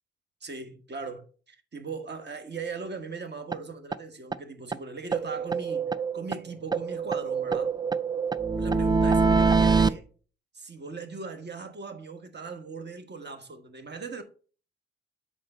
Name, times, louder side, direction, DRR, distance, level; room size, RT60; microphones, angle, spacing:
voice 1, 0.4-7.7 8.6-10.1 10.5-14.2, right 4 dB, 35° right, 1.5 m, -39 dB
sound 1, 3.5-3.6 3.9-4.0 4.3-4.4 4.7-4.8 5.1-6.4 6.7-9.9, right 4 dB, 15° right, 0.4 m, -24 dB
7.6 x 5.0 x 4.3 m
hypercardioid pair, 45°, 31 cm